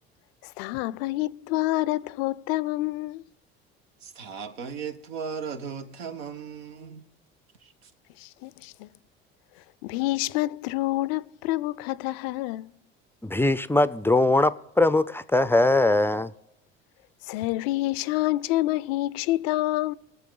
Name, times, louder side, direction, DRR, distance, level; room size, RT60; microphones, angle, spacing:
voice 1, 0.4-3.2 8.2-8.9 9.8-12.7 17.3-19.9, left 17 dB, 75° left, 0.5 m, -27 dB
voice 2, 4.0-7.0 7.6-7.9, right 6 dB, 85° right, 1.1 m, -37 dB
voice 3, 13.2-16.3, left 2 dB, 10° left, 0.4 m, -21 dB
19.5 x 7.1 x 3.9 m
hypercardioid pair, 70°, 30 cm